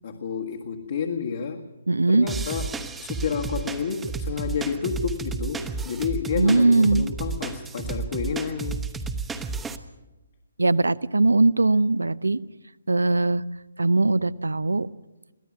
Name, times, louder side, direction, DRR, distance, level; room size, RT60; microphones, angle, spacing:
voice 1, 0.0-1.7 2.1-8.8, left 6 dB, 55° left, 2 dB, 1.7 m, -30 dB
voice 2, 1.9-2.3 6.4-7.0 10.6-12.4 12.9-13.4 13.8-14.9, right 2 dB, 85° right, 19 dB, 0.6 m, -20 dB
sound 1, 2.3-9.8, right 4 dB, 10° right, 1.0 m, -32 dB
23.0 x 16.5 x 7.4 m, 1.1 s
figure-of-eight pair, 140°, 0 cm